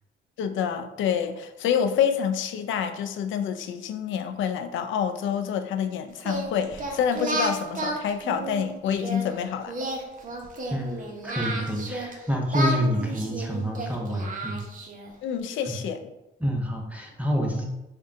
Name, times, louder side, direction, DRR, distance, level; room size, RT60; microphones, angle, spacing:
voice 1, 0.4-9.7 15.2-16.0, left 8 dB, 75° left, 8 dB, 0.4 m, -27 dB
Singing, 6.2-9.2 9.7-12.1 12.5-15.1, right 2 dB, 45° right, 0.7 m, -32 dB
voice 2, 10.7-14.6 15.7-15.8 16.4-17.6, equal, 5° right, 0 dB, 0.6 m, -28 dB
3.6 x 2.2 x 3.8 m, 0.96 s
cardioid pair, 90°, 20 cm